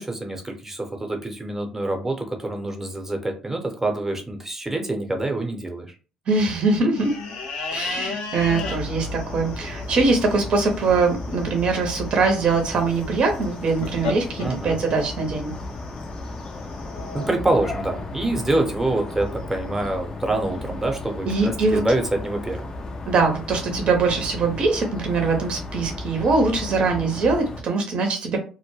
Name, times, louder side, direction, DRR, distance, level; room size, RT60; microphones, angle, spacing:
voice 1, 0.0-5.9 14.4-14.8 17.1-22.7, right 2 dB, 15° right, 4 dB, 0.8 m, -26 dB
voice 2, 6.3-7.2 7.7-15.5 21.2-21.8 23.1-28.4, right 4 dB, 55° right, 3 dB, 0.7 m, -22 dB
sound 1, 7.0-17.3, left 4 dB, 75° left, 0.7 m, -36 dB
sound 2, 8.4-27.6, left 2 dB, 35° left, 0.5 m, -34 dB
2.1 x 2.1 x 3.1 m, 0.35 s
hypercardioid pair, 65°, 2 cm